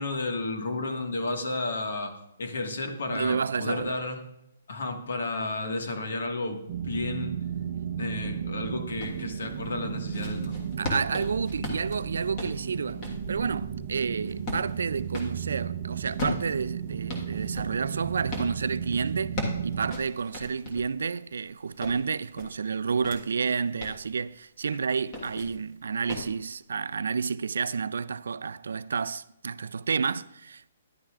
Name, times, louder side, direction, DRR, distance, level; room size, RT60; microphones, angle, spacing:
voice 1, 0.0-2.1 2.4-4.2 4.7-7.3 8.0-10.6, left 2 dB, 70° left, 1.6 m, -32 dB
voice 2, 3.1-4.0 10.8-30.7, right 5 dB, 85° right, 0.4 m, -30 dB
sound 1, 6.7-19.9, right 8 dB, 40° right, 0.6 m, -34 dB
sound 2, 9.0-9.2 9.8-15.4 16.0-18.5 19.1-20.9 21.4-23.2 23.6-24.0 25.0-25.6 26.1-26.3, left 1 dB, 20° left, 1.4 m, -37 dB
13.0 x 11.0 x 2.4 m
hypercardioid pair, 175°, 0 cm